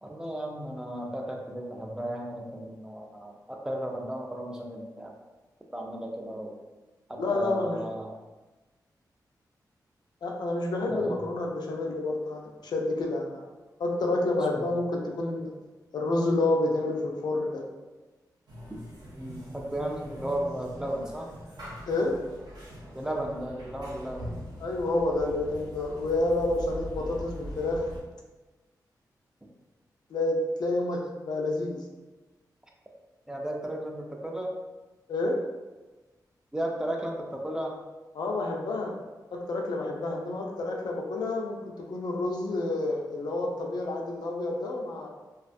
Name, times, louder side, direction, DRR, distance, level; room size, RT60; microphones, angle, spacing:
voice 1, 0.0-5.1 5.7-6.6 7.1-8.1 10.9-11.2 14.5-14.7 19.2-21.3 22.9-24.3 33.3-34.5 36.5-37.8, right 1 dB, 10° right, 0 dB, 0.3 m, -34 dB
voice 2, 7.2-7.8 10.2-13.5 13.8-15.5 15.9-17.6 21.9-22.2 24.6-27.8 30.1-31.8 35.1-35.4 38.2-39.0 39.3-45.1, left 2 dB, 75° left, 0 dB, 0.4 m, -29 dB
sound 1, 18.5-28.0, equal, 85° right, 0.7 m, -42 dB
2.4 x 2.2 x 2.5 m, 1.2 s
wide cardioid pair, 135°, 7 cm